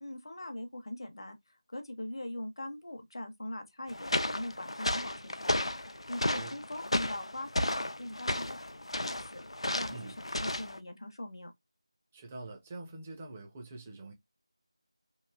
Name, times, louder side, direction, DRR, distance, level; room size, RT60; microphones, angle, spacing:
voice 1, 0.0-9.4 9.7-11.5, left 1 dB, 60° left, 0.7 m, -42 dB
sound 1, 3.9-10.8, left 1 dB, 90° left, 0.4 m, -33 dB
voice 2, 12.1-14.1, right 2 dB, 10° right, 0.4 m, -45 dB
3.1 x 2.5 x 2.2 m
figure-of-eight pair, 170°, 3 cm